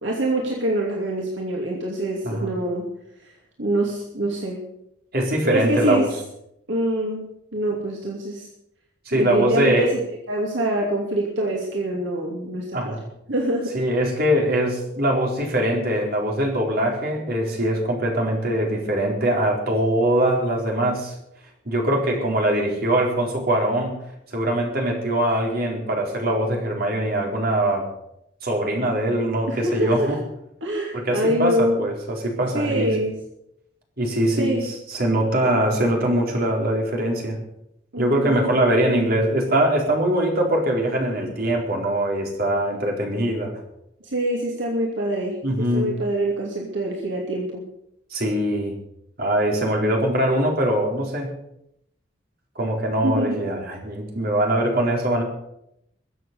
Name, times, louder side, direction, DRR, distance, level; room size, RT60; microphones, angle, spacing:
voice 1, 0.0-2.9 3.6-4.6 5.4-6.1 6.7-7.2 7.5-8.5 9.1-10.0 10.3-12.9 13.3-13.8 29.5-30.1 30.6-31.8 32.5-33.1 34.4-34.7 37.9-38.4 44.0-47.6 53.0-53.4, right 1 dB, 70° right, -1 dB, 2.7 m, -25 dB
voice 2, 5.1-6.1 9.1-9.9 12.7-13.0 13.7-21.1 21.7-24.0 24.3-27.8 28.4-30.2 30.9-33.0 34.0-37.4 38.0-43.5 45.4-45.9 48.1-48.8 49.2-51.3 52.6-55.2, right 1 dB, 50° right, 0 dB, 4.2 m, -22 dB
22.5 x 7.9 x 6.9 m, 0.79 s
head